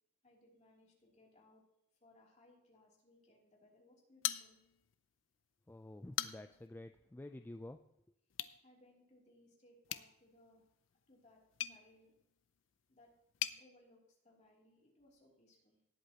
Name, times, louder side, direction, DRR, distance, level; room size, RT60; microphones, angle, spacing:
voice 1, 0.2-1.6 2.0-4.6 8.6-12.1 12.9-13.1 13.5-15.8, left 1 dB, 40° left, -2 dB, 3.0 m, -67 dB
sound 1, 4.2-5.0 5.3-5.4 5.9-6.7 8.3-8.6 9.8-13.6, left 12 dB, 80° left, 0.5 m, -43 dB
voice 2, 5.7-7.8, left 1 dB, 10° left, 8 dB, 0.3 m, -50 dB
18.5 x 8.1 x 2.9 m, 0.79 s
head